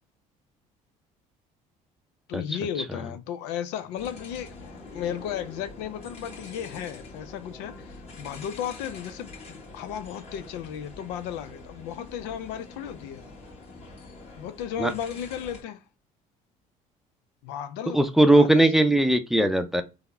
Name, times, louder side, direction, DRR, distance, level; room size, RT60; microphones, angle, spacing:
voice 1, 2.3-13.3 14.4-15.8 17.4-18.0 18.3-18.7, left 9 dB, 80° left, 0.5 m, -35 dB
sound 1, 4.0-15.6, left 3 dB, 40° left, 1.6 m, -45 dB
voice 2, 17.9-19.8, right 1 dB, ahead, 0.5 m, -19 dB
3.4 x 2.0 x 3.2 m
supercardioid pair, 80°, 17 cm